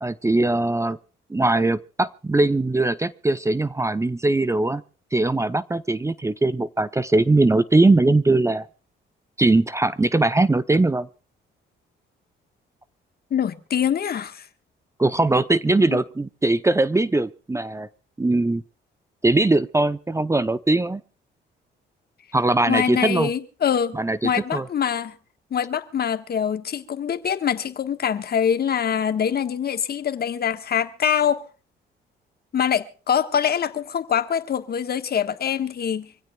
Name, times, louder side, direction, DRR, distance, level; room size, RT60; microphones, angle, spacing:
voice 1, 0.0-1.0 1.3-4.8 5.1-8.7 9.4-11.1 15.0-17.9 18.2-18.6 19.2-21.0 22.3-23.3 23.9-24.7, right 2 dB, 15° right, 0.7 m, -20 dB
voice 2, 13.3-14.5 15.9-16.0 22.7-24.0 24.2-25.1 25.5-31.4 32.5-36.1, left 8 dB, 50° left, 1.4 m, -24 dB
25.5 x 16.0 x 2.3 m
cardioid pair, 90°, 20 cm